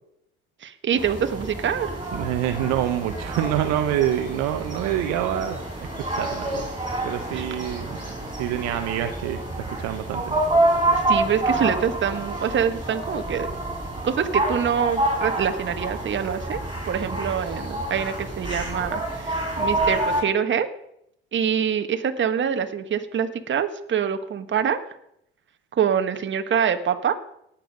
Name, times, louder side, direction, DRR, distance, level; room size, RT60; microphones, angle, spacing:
voice 1, 0.6-1.9 7.3-7.5 10.9-13.5 14.0-20.7 21.3-24.8 25.7-27.1, right 8 dB, 40° right, 8 dB, 1.6 m, -25 dB
sound 1, 1.0-20.2, right 2 dB, 15° right, 5.8 m, -28 dB
voice 2, 2.1-5.6 6.1-6.7 7.0-8.1 8.4-9.4 9.7-10.4, right 11 dB, 65° right, 7 dB, 1.2 m, -26 dB
18.5 x 7.5 x 5.3 m, 0.75 s
hypercardioid pair, 70°, 30 cm